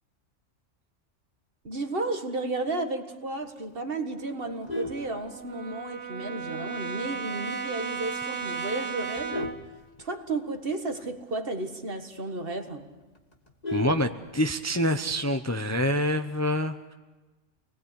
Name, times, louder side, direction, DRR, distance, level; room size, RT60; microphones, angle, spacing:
voice 1, 1.6-9.5 10.0-12.9, right 2 dB, 50° right, 1.9 m, -33 dB
Brass instrument, 4.1-9.7, right 5 dB, 75° right, 1.5 m, -36 dB
Vehicle horn car horn honking, 4.4-5.9 6.4-6.6 6.9-7.0 7.4-7.5 7.8-8.2 8.7-10.6 10.9-11.0 11.3-11.4 11.8-11.9 12.3-12.4 12.6-14.7 15.9-16.3, left 1 dB, 35° left, 2.1 m, -37 dB
voice 2, 13.7-16.8, equal, 15° left, 0.7 m, -26 dB
28.5 x 20.5 x 8.3 m
omnidirectional pair, 1.3 m